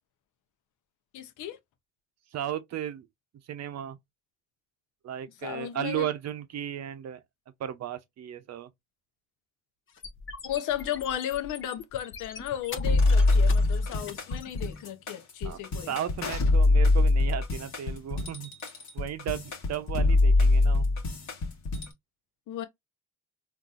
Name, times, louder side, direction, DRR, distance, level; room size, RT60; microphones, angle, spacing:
voice 1, 1.1-1.6 5.4-6.1 10.4-15.9 22.5-22.6, left 11 dB, 85° left, 0.7 m, -34 dB
voice 2, 2.3-3.1 3.5-4.0 5.0-7.2 7.6-8.7 15.4-15.6 15.9-18.5 18.9-20.9, right 10 dB, 60° right, 0.6 m, -35 dB
sound 1, 9.9-14.9, left 5 dB, 40° left, 0.7 m, -43 dB
sound 2, 12.8-21.9, left 2 dB, 65° left, 1.3 m, -24 dB
3.9 x 2.6 x 2.4 m
cardioid pair, 90°, 30 cm